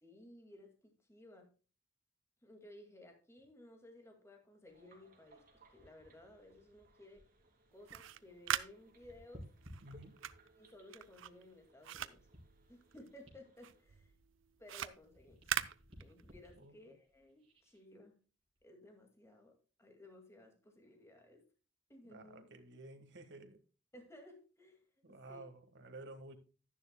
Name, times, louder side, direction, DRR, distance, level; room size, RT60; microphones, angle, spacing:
voice 1, 0.0-1.5 2.4-5.4 5.7-7.3 7.7-9.5 10.6-12.3 12.7-14.1 14.6-15.4 16.0-18.2 18.6-21.4 21.9-22.4 23.9-24.8 25.1-25.4, left 1 dB, 15° left, 2.1 m, -58 dB
sound 1, 4.7-13.8, right 2 dB, 45° right, 2.8 m, -68 dB
sound 2, 5.5-8.2 8.5-10.6 11.2-14.7 15.0-17.8 18.4-18.6, equal, 30° right, 3.9 m, -59 dB
sound 3, 7.7-13.3 13.6-16.5, right 10 dB, 90° right, 0.6 m, -42 dB
voice 2, 9.8-10.2 16.6-16.7 22.0-23.6 25.0-26.4, right 2 dB, 65° right, 1.6 m, -52 dB
12.0 x 10.5 x 2.2 m
head